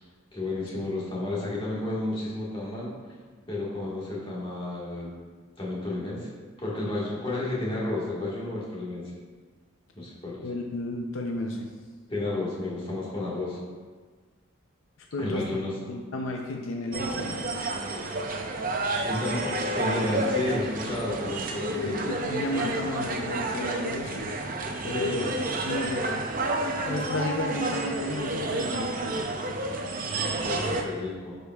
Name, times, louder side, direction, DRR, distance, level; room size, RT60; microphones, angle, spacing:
voice 1, 0.3-2.9 3.5-5.1 5.6-6.3 6.6-9.0 10.0-10.4 12.1-13.6 15.2-15.7 19.0-22.1 24.9-25.3 30.1-31.3, left 2 dB, 25° left, -6 dB, 1.6 m, -31 dB
voice 2, 10.4-11.7 15.1-15.5 15.9-17.4 21.7-24.3 24.8-25.3 25.6-26.3 26.8-29.2, left 2 dB, 75° left, 1 dB, 0.6 m, -32 dB
sound 1, 16.9-30.8, right 2 dB, 40° right, 0.5 m, -30 dB
10.5 x 5.1 x 2.4 m, 1.5 s
head